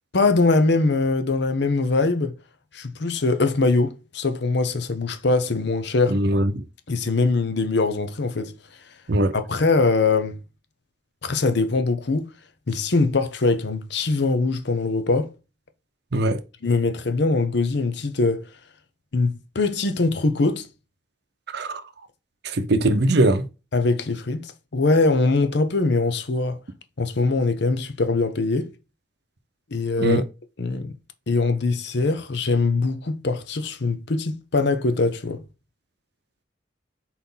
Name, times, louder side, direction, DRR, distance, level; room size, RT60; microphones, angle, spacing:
voice 1, 0.1-2.3 2.7-6.2 6.9-8.5 9.3-10.4 11.2-12.3 12.7-15.3 16.6-18.5 19.1-20.7 23.7-26.6 27.0-28.7 29.7-30.2 30.6-30.9 31.3-35.4, left 3 dB, 60° left, 0.8 m, -22 dB
voice 2, 6.1-6.6 9.1-9.3 16.1-16.4 21.5-21.8 22.4-23.4 30.0-30.2, right 1 dB, 60° right, 0.7 m, -21 dB
4.3 x 4.1 x 5.5 m
head